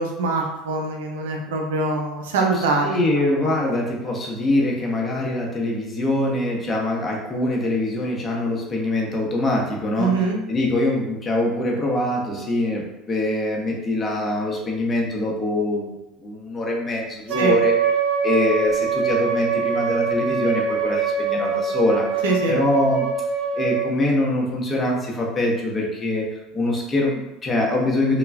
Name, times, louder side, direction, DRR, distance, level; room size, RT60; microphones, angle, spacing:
voice 1, 0.0-2.9 3.2-3.3 3.6-3.7 10.0-10.4 17.4-17.6 22.2-22.6, right 3 dB, 85° right, 1 dB, 0.5 m, -23 dB
voice 2, 2.5-10.2 10.5-17.7 18.2-23.1 23.5-26.3 26.5-28.2, left 1 dB, 25° left, -2 dB, 0.7 m, -23 dB
Wind instrument woodwind instrument, 17.3-23.8, right 5 dB, 45° right, 1.3 m, -23 dB
3.4 x 2.2 x 2.2 m, 0.95 s
hypercardioid pair, 90°, 0 cm